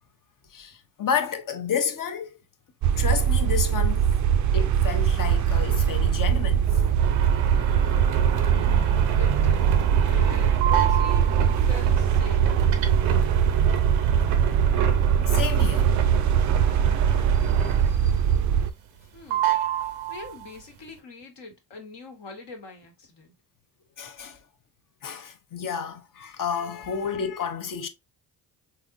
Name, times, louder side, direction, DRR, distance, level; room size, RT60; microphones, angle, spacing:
voice 1, 0.5-2.4 3.0-4.0 4.5-6.8 15.2-15.9 16.6-17.7 18.0-18.1 24.0-24.4 25.0-27.9, left 7 dB, 40° left, 0.8 m, -31 dB
sound 1, 2.8-18.7, right 8 dB, 40° right, 0.4 m, -21 dB
sound 2, 6.7-18.2 18.5-19.0 19.3-20.6, right 9 dB, 90° right, 0.6 m, -29 dB
voice 2, 8.6-9.7 10.1-12.5 19.1-19.5 20.1-23.3 27.0-27.1, left 3 dB, 60° left, 1.3 m, -43 dB
4.0 x 2.9 x 2.5 m
hypercardioid pair, 40°, 49 cm